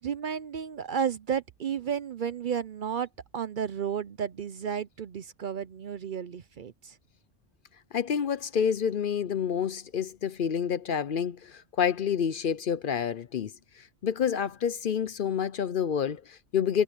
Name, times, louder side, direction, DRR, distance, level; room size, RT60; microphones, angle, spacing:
voice 1, 0.0-3.1 3.3-7.0, right 7 dB, 55° right, 0.6 m, -32 dB
voice 2, 7.9-16.8, left 7 dB, 55° left, 0.7 m, -28 dB
omnidirectional pair, 1.3 m